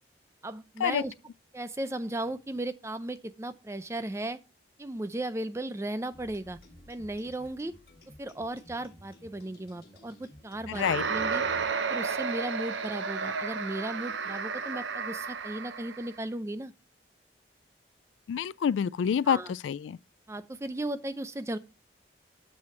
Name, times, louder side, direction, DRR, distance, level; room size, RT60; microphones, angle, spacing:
voice 1, 0.4-1.1 1.5-4.4 4.8-6.6 6.9-7.7 8.2-10.8 11.1-11.4 11.9-16.7 19.3-19.5 20.3-21.6, right 1 dB, 15° right, 0.4 m, -36 dB
sound 1, 6.1-11.7, left 1 dB, 50° left, 1.4 m, -53 dB
voice 2, 10.7-11.0 18.3-20.0, left 8 dB, 90° left, 0.3 m, -27 dB
sound 2, 10.7-16.1, right 5 dB, 90° right, 0.7 m, -32 dB
7.7 x 6.1 x 4.3 m
head